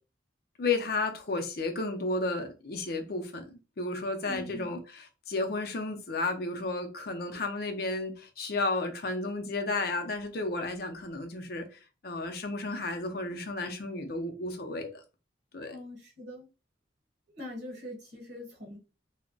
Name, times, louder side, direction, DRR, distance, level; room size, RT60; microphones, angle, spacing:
voice 1, 0.6-14.9 15.5-15.7, left 3 dB, 50° left, 0.5 m, -33 dB
voice 2, 4.2-4.7 15.7-16.5 17.3-18.8, left 2 dB, 60° right, 0.9 m, -42 dB
2.2 x 2.1 x 3.7 m
head